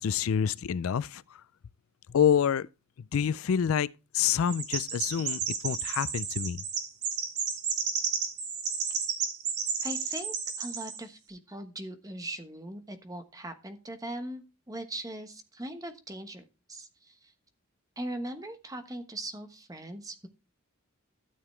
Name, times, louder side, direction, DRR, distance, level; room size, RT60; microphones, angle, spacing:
voice 1, 0.0-1.4 2.1-2.7 3.1-6.6, left 8 dB, 65° left, 0.4 m, -27 dB
Chirp tweet, 4.5-11.0, right 6 dB, 50° right, 1.9 m, -32 dB
voice 2, 9.8-17.3 18.0-20.3, right 1 dB, 15° right, 1.2 m, -40 dB
13.0 x 6.9 x 3.2 m
head